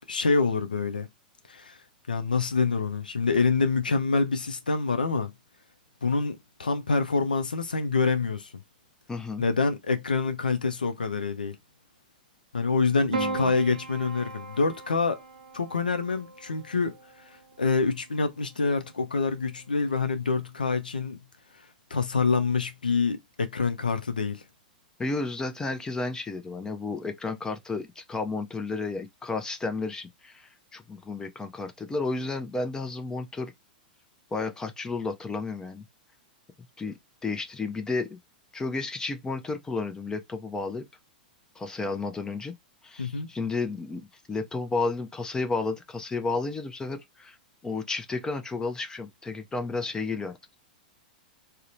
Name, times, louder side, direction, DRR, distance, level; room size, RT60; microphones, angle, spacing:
voice 1, 0.1-1.1 1.5-1.8 2.1-5.3 6.0-8.5 9.4-11.6 12.5-15.2 15.5-21.2 21.9-24.4 43.0-43.3, left 4 dB, 90° left, 0.4 m, -26 dB
voice 2, 9.1-9.4 13.1-13.5 25.0-33.5 34.3-35.8 36.8-38.2 38.5-40.8 41.6-42.5 42.8-47.4 47.6-50.4, left 3 dB, 15° left, 0.4 m, -32 dB
Piano, 13.1-17.6 18.8-19.5, right 3 dB, 80° right, 0.5 m, -37 dB
2.7 x 2.0 x 2.5 m
hypercardioid pair, 105°, 5 cm